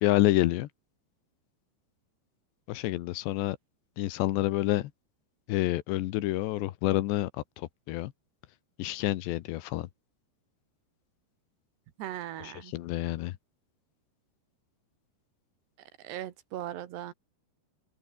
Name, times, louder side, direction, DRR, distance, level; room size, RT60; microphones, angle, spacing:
voice 1, 0.0-0.7 2.7-3.6 4.0-4.9 5.5-7.3 7.6-8.1 8.8-9.9 12.4-13.3, left 16 dB, 90° left, 3.3 m, -28 dB
voice 2, 12.0-12.7 16.0-17.1, right 12 dB, 75° right, 3.6 m, -38 dB
open air
omnidirectional pair, 5.0 m